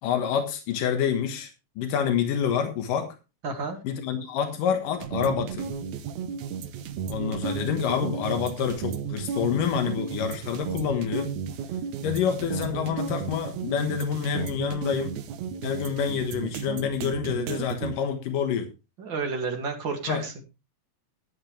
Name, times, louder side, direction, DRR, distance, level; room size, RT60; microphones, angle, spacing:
voice 1, 0.0-1.5 1.8-3.1 3.8-5.7 7.1-11.3 12.0-15.2 15.6-18.7 20.1-20.3, left 7 dB, 90° left, 6 dB, 3.0 m, -27 dB
voice 2, 3.4-3.8 19.0-20.4, right 4 dB, 40° right, 4 dB, 2.6 m, -31 dB
sound 1, 5.0-17.9, right 7 dB, 70° right, 2.2 m, -34 dB
13.0 x 11.0 x 3.2 m, 0.28 s
omnidirectional pair, 3.7 m